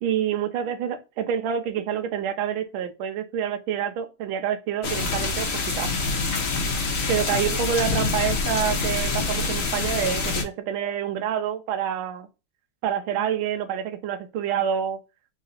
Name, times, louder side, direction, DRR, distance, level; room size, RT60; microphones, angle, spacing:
voice 1, 0.0-5.5 5.8-5.9 7.1-12.3 12.8-15.0, right 9 dB, 75° right, 1.4 m, -27 dB
sound 1, 4.8-10.4, left 4 dB, 50° left, 1.0 m, -26 dB
4.0 x 2.7 x 3.9 m
omnidirectional pair, 2.4 m